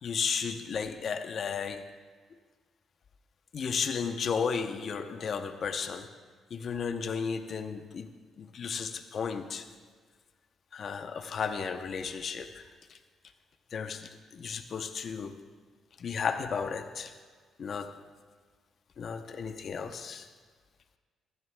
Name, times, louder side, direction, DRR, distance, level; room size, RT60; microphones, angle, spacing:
voice 1, 0.0-1.9 3.5-6.1 6.5-8.1 8.4-9.7 10.7-12.6 12.9-13.0 13.7-15.3 16.0-17.1 17.6-18.0 19.0-20.3, left 6 dB, 55° left, 0.7 m, -34 dB
15.5 x 11.0 x 2.2 m
cardioid pair, 90°, 0 cm